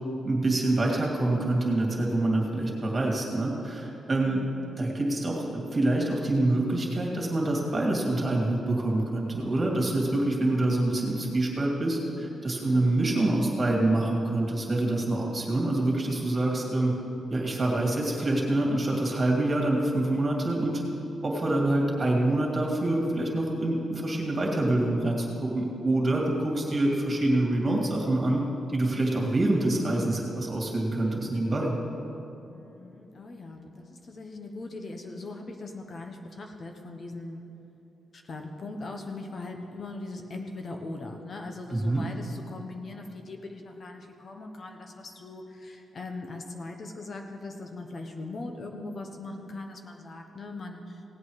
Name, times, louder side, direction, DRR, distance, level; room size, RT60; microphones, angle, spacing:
voice 1, 0.2-4.4 4.8-17.0 17.3-20.8 21.2-31.7 41.7-42.1, right 2 dB, 30° right, -1 dB, 2.4 m, -26 dB
voice 2, 4.2-4.7 12.6-13.0 32.5-37.4 38.1-51.0, left 2 dB, 45° left, 3 dB, 1.0 m, -40 dB
17.5 x 8.3 x 4.9 m, 3.0 s
cardioid pair, 115°, 0 cm